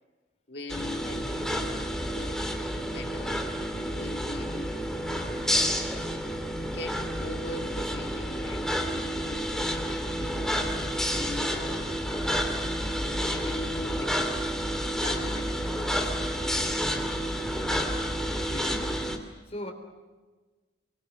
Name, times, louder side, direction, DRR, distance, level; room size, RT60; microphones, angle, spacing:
voice 1, 0.5-2.5 2.8-3.4 3.7-5.6 6.5-10.6 11.1-11.9 13.2-14.2 15.0-16.2, left 2 dB, 55° left, 3 dB, 2.3 m, -41 dB
sound 1, 0.7-19.2, equal, 5° left, 2.7 m, -30 dB
voice 2, 18.2-18.9 19.5-19.7, left 1 dB, 35° left, 6 dB, 3.8 m, -39 dB
29.5 x 23.5 x 6.3 m, 1.3 s
head